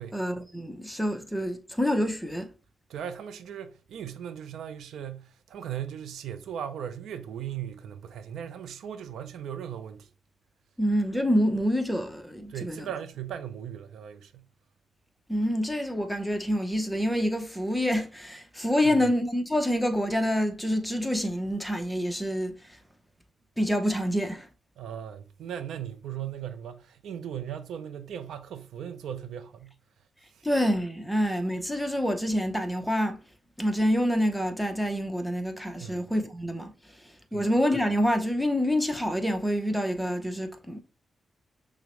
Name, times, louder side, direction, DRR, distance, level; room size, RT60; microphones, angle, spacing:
voice 1, 0.1-2.5 10.8-12.9 15.3-22.8 23.6-24.5 30.4-33.2 33.6-36.7 37.3-40.8, equal, 5° left, 0.6 m, -27 dB
voice 2, 2.9-10.1 12.5-14.5 18.8-19.1 24.8-29.7 30.3-30.5 35.8-36.0 37.3-37.5, right 9 dB, 90° right, 0.4 m, -38 dB
6.1 x 2.0 x 3.0 m
cardioid pair, 90°, 0 cm